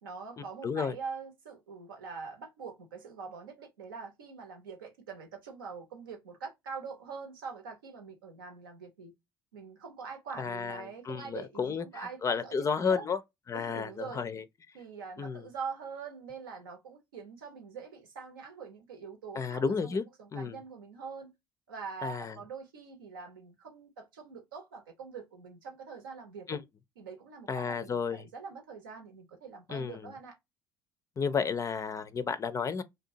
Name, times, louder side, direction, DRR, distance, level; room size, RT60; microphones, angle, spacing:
voice 1, 0.0-9.1 9.5-12.5 12.8-13.0 13.5-14.2 14.7-21.3 21.7-26.6 27.0-30.4, right 5 dB, 80° right, 0.8 m, -44 dB
voice 2, 0.6-0.9 10.4-13.2 13.5-14.4 15.2-15.4 19.4-20.0 20.3-20.6 22.0-22.4 26.5-26.6 27.5-28.3 29.7-30.1 31.2-32.8, left 5 dB, 30° left, 0.4 m, -32 dB
2.7 x 2.1 x 2.7 m
figure-of-eight pair, 60°, 11 cm